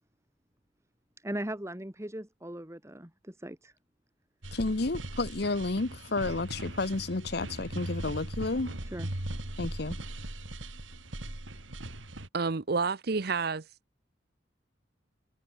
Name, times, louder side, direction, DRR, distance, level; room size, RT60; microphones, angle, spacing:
voice 1, 1.2-3.7 8.9-9.1, right 1 dB, 15° right, 1.9 m, -39 dB
sound 1, 4.4-12.3, right 1 dB, 85° right, 3.2 m, -39 dB
voice 2, 4.5-8.8 9.6-10.0, left 3 dB, 60° left, 1.0 m, -31 dB
voice 3, 12.3-13.8, right 4 dB, 55° right, 0.8 m, -29 dB
head